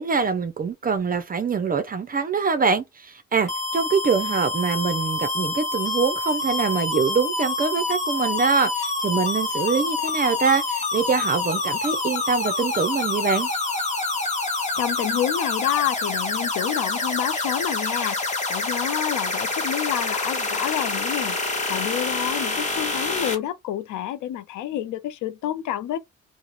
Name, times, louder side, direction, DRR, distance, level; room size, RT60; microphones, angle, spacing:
voice 1, 0.0-13.5, right 5 dB, 30° right, 0.4 m, -24 dB
sound 1, 3.5-23.3, left 3 dB, 25° left, 0.8 m, -27 dB
voice 2, 14.8-18.2 18.5-21.4 21.7-26.0, left 11 dB, 80° left, 0.5 m, -28 dB
2.3 x 2.0 x 2.9 m
cardioid pair, 90°, 30 cm